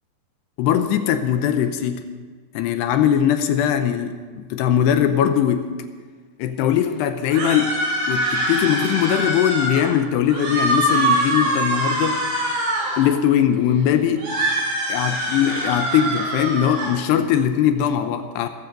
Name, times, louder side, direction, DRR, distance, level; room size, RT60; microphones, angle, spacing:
voice 1, 0.6-2.0 2.5-5.7 6.4-7.7 8.1-12.2 13.0-14.3 14.9-18.5, left 9 dB, 75° left, 8 dB, 2.7 m, -20 dB
sound 1, 7.3-9.9 10.3-13.1 14.2-16.9, right 1 dB, 75° right, 6.9 m, -23 dB
17.5 x 15.5 x 5.3 m, 1.5 s
omnidirectional pair, 5.2 m